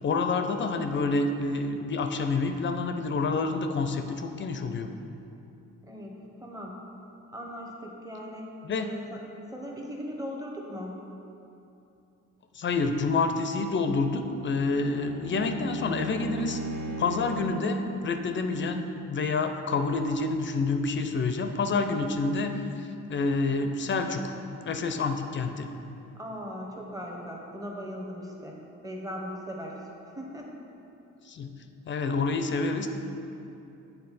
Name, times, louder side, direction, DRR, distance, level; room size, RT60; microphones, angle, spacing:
voice 1, 0.0-4.9 8.6-8.9 12.5-16.6 17.0-24.3 24.6-25.7 31.2-31.5 31.9-32.9, left 3 dB, 40° left, 6 dB, 0.5 m, -28 dB
voice 2, 5.8-6.9 7.3-8.5 8.8-9.2 9.5-11.1 21.9-22.0 26.2-28.6 28.8-30.6, equal, 10° right, -1 dB, 1.0 m, -39 dB
Bowed string instrument, 13.7-17.6, right 1 dB, 50° right, 1.0 m, -38 dB
7.7 x 4.0 x 4.2 m, 2.8 s
cardioid pair, 90°, 30 cm